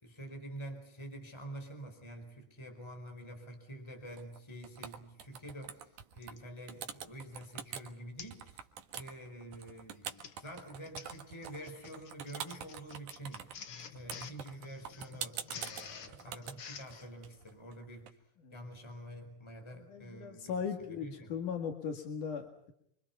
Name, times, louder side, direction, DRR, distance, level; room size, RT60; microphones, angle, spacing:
voice 1, 0.0-8.7 8.9-13.6 13.9-18.2 18.5-21.4, right 1 dB, 10° left, 5 dB, 4.5 m, -47 dB
sound 1, 4.2-4.4 4.6-6.3 6.7-7.9 8.3-18.1, right 8 dB, 75° right, 3.0 m, -45 dB
Printer, 5.0-5.1 6.2-6.5 7.1-7.3 7.6-7.7 8.2-8.5 8.8-9.1 9.8-17.1, left 7 dB, 50° left, 2.1 m, -50 dB
voice 2, 19.7-22.7, left 6 dB, 80° left, 4 dB, 3.6 m, -38 dB
28.0 x 24.5 x 5.6 m, 0.73 s
omnidirectional pair, 3.6 m